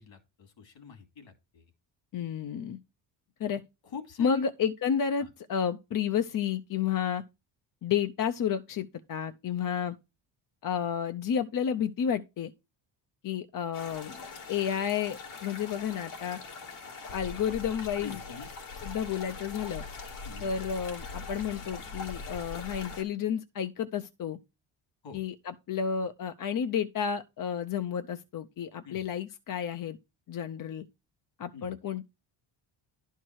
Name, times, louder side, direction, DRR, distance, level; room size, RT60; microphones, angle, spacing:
voice 1, 0.0-1.7 3.8-4.5 5.2-5.3 18.0-18.5 20.2-20.5 25.0-25.2 28.8-29.0 31.5-31.7, left 6 dB, 65° left, 2.6 m, -44 dB
voice 2, 2.1-2.8 3.4-3.6 4.2-7.2 7.8-10.0 10.6-12.5 13.2-16.4 17.1-18.2 18.8-19.8 20.4-24.4 25.1-30.0 30.3-30.8 31.4-32.0, left 8 dB, 45° left, 0.6 m, -31 dB
sound 1, 13.7-23.0, left 4 dB, 85° left, 2.6 m, -42 dB
11.0 x 4.6 x 4.6 m
cardioid pair, 110°, 48 cm